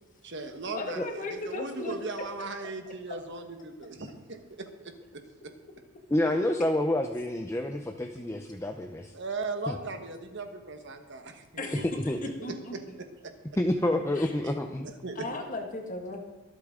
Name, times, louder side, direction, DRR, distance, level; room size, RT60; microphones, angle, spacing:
voice 1, 0.2-4.9 9.1-12.8 13.2-13.3 14.4-14.5 15.0-15.3, right 3 dB, 55° right, 6 dB, 1.3 m, -38 dB
voice 2, 0.7-2.0 11.6-13.0 14.1-14.3 15.2-16.2, left 2 dB, 40° left, 3 dB, 1.8 m, -36 dB
voice 3, 6.1-9.1 9.7-9.8 12.1-12.2 13.6-14.9, left 1 dB, 15° left, 5 dB, 0.6 m, -28 dB
24.0 x 8.3 x 3.7 m, 1.2 s
head